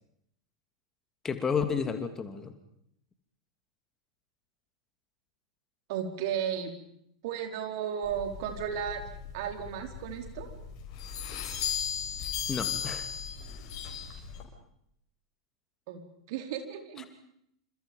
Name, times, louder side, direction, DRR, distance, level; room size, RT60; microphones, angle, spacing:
voice 1, 1.2-2.5 12.5-13.1 17.0-17.1, left 6 dB, 20° left, 8 dB, 2.8 m, -31 dB
voice 2, 5.9-6.7 7.2-9.1 9.3-10.5 15.9-17.0, right 8 dB, 50° right, 5 dB, 4.5 m, -34 dB
sound 1, 8.0-14.4, left 8 dB, 40° left, 7.1 m, -37 dB
28.5 x 28.0 x 5.4 m, 0.72 s
figure-of-eight pair, 90°, 3 cm